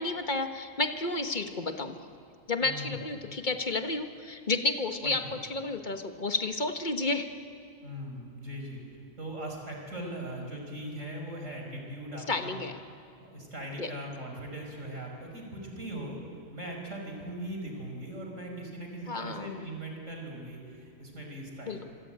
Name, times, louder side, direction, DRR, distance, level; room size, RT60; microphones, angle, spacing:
voice 1, 0.0-2.0 2.5-5.2 5.5-7.3 12.3-12.8 13.8-13.9 19.1-19.6 21.7-21.9, left 3 dB, 40° left, 6 dB, 1.5 m, -31 dB
voice 2, 2.6-2.9 5.0-5.4 7.8-8.8 9.2-12.6 13.2-16.2 16.5-21.9, right 1 dB, 85° right, 1 dB, 5.5 m, -40 dB
26.0 x 24.5 x 8.8 m, 2.4 s
omnidirectional pair, 1.3 m